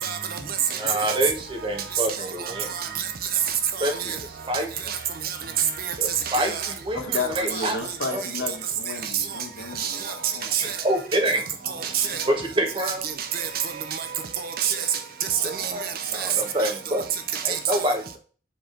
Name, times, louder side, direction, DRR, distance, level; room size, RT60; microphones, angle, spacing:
voice 1, 0.0-0.4 0.7-1.2 2.1-3.1 3.5-4.2 4.9-5.0 5.2-5.4 5.8-5.9 6.3-6.7 7.5-7.7 9.1-9.4 9.8-10.1 10.5-10.8 11.7-12.3 12.8-14.1 14.4-16.3 16.6-16.7 17.3-17.8, right 8 dB, 50° right, 0.5 m, -28 dB
voice 2, 0.7-2.7 3.8-4.1 4.5-4.7 6.0-7.8 8.1-8.2 9.0-9.1 10.6-11.4 12.2-13.0 15.4-17.0 17.4-18.2, equal, 25° right, 1.2 m, -27 dB
voice 3, 6.9-10.5, left 3 dB, 70° left, 1.1 m, -33 dB
7.0 x 3.4 x 3.9 m
head